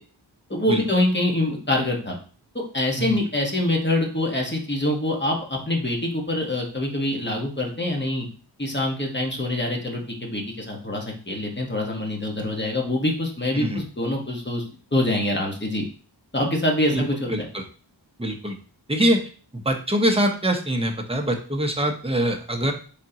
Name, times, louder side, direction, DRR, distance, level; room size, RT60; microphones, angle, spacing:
voice 1, 0.5-2.1 2.7-8.3 8.6-14.6 14.9-15.8 16.3-17.5, left 1 dB, 25° left, 0 dB, 1.2 m, -25 dB
voice 2, 17.3-17.6 18.2-18.6 18.9-19.2 19.5-22.7, right 1 dB, 15° right, 2 dB, 0.8 m, -23 dB
5.0 x 3.6 x 2.8 m, 0.40 s
wide cardioid pair, 60°, 42 cm